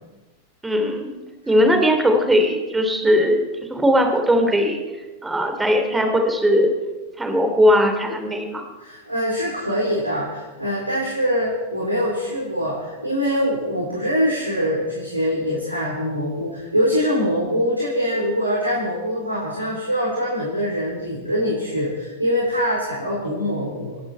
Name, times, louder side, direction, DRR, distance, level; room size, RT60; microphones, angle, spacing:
voice 1, 0.6-1.1 1.5-3.4 3.7-4.8 5.2-6.7 7.2-8.6, equal, 10° right, 4 dB, 3.0 m, -19 dB
voice 2, 8.8-24.0, equal, 85° right, -4 dB, 4.2 m, -23 dB
28.5 x 11.0 x 4.5 m, 1.2 s
figure-of-eight pair, 90°, 0 cm